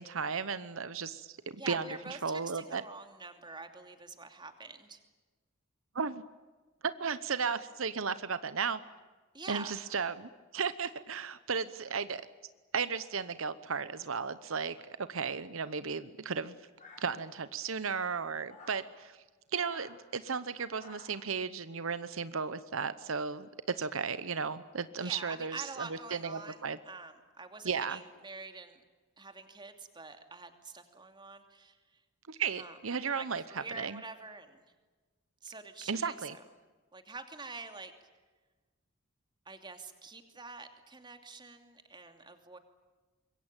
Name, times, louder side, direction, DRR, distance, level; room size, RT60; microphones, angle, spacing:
voice 1, 0.0-1.9 2.2-2.8 5.9-6.2 7.0-8.8 9.5-12.2 12.7-16.5 17.0-19.2 19.5-23.5 23.7-26.8 27.6-28.0 32.3-34.0 35.9-36.3, right 5 dB, 75° right, 13 dB, 0.9 m, -35 dB
voice 2, 1.6-5.0 9.3-9.8 25.0-28.8 29.2-31.8 32.6-32.8 33.1-34.6 35.4-36.4 36.9-37.9 39.5-42.6, right 3 dB, 25° right, 6 dB, 2.8 m, -46 dB
sound 1, 16.8-17.5 18.5-18.9 19.5-20.0 20.8-21.3, left 3 dB, 35° left, 7.2 m, -53 dB
26.0 x 22.5 x 9.0 m, 1.3 s
head